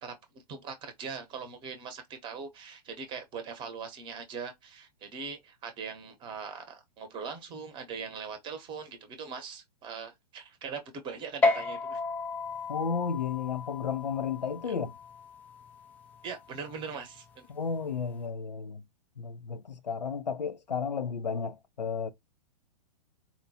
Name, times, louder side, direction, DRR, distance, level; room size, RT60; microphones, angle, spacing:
voice 1, 0.0-12.0 14.7-14.8 16.2-17.5, right 5 dB, 20° right, 0.9 m, -41 dB
sound 1, 11.4-18.2, left 3 dB, 10° left, 0.3 m, -34 dB
voice 2, 12.7-14.9 17.5-18.8 19.2-22.1, left 6 dB, 85° left, 0.5 m, -33 dB
4.1 x 2.2 x 2.7 m
figure-of-eight pair, 115°, 21 cm